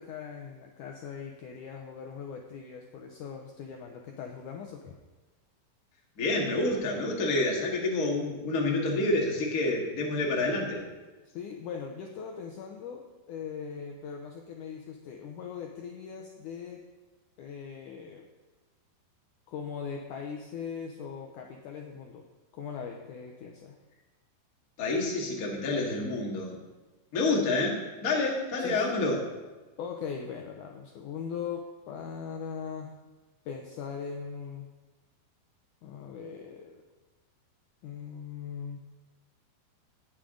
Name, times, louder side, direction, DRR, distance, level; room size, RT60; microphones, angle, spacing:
voice 1, 0.0-4.9 11.3-16.8 17.4-18.2 19.5-22.2 22.5-23.8 28.6-29.0 29.8-32.9 33.5-34.7 35.8-36.8 37.8-38.8, left 6 dB, 85° left, 2 dB, 1.8 m, -40 dB
voice 2, 6.2-10.9 24.8-26.6 27.1-29.2, left 2 dB, 40° left, -1 dB, 1.3 m, -28 dB
18.5 x 7.5 x 3.8 m, 1.2 s
omnidirectional pair, 4.6 m